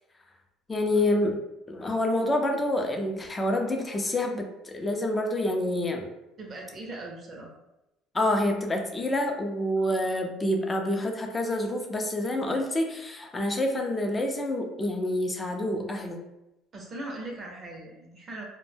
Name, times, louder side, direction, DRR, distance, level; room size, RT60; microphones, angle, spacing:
voice 1, 0.7-1.4 1.7-6.1 8.1-16.2, left 1 dB, 20° left, 3 dB, 0.5 m, -27 dB
voice 2, 6.4-7.5 16.7-18.5, right 2 dB, 35° right, 0 dB, 0.6 m, -39 dB
2.1 x 2.1 x 3.2 m, 0.91 s
cardioid pair, 105°, 0 cm